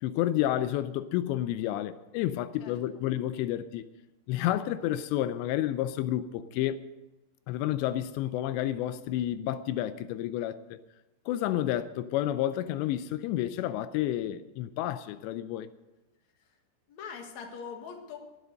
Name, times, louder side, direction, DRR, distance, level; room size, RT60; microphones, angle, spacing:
voice 1, 0.0-3.8 4.3-6.8 7.5-10.8 11.3-15.7, left 13 dB, 85° left, 2.8 m, -30 dB
voice 2, 2.6-3.0 16.4-16.6 16.9-18.2, left 6 dB, 50° left, 2.5 m, -43 dB
20.5 x 7.5 x 6.5 m
omnidirectional pair, 5.0 m